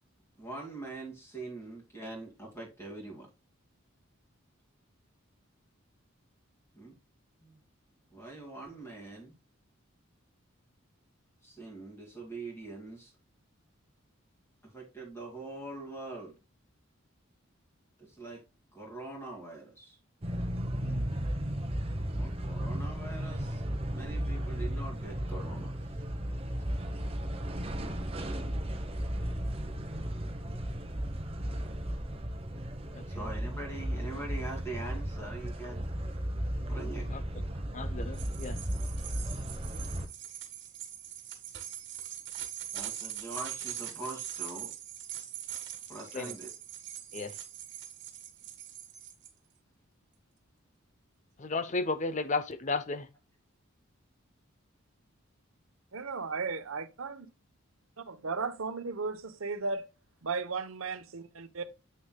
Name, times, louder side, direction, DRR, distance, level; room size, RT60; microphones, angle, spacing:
voice 1, 0.4-3.3 6.7-7.0 7.4-7.6 8.1-9.3 11.4-13.1 14.6-16.4 18.0-18.4 18.7-20.0 22.1-23.6 23.9-26.0 33.1-35.9 36.7-37.1 37.5-37.6 42.7-44.7 45.9-46.5, right 2 dB, 10° left, 2.3 m, -43 dB
sound 1, 20.2-40.1, equal, 25° right, 0.9 m, -35 dB
voice 2, 37.7-38.6 46.1-46.3 47.1-47.3 51.4-53.1, left 3 dB, 35° left, 0.7 m, -33 dB
sound 2, 38.1-49.3, right 11 dB, 55° right, 1.5 m, -42 dB
voice 3, 55.9-57.3 58.0-59.8 60.2-61.6, right 4 dB, 75° right, 0.9 m, -35 dB
7.8 x 6.4 x 2.2 m
head